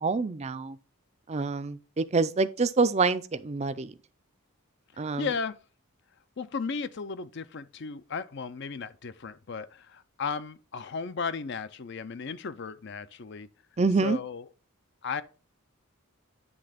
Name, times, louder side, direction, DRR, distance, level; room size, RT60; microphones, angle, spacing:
voice 1, 0.0-0.8 1.3-3.9 5.0-5.3 13.8-14.2, right 4 dB, 30° right, 0.4 m, -26 dB
voice 2, 4.9-5.6 6.4-13.5 14.0-14.4 15.0-15.2, left 5 dB, 50° left, 0.5 m, -35 dB
9.7 x 3.3 x 5.0 m
head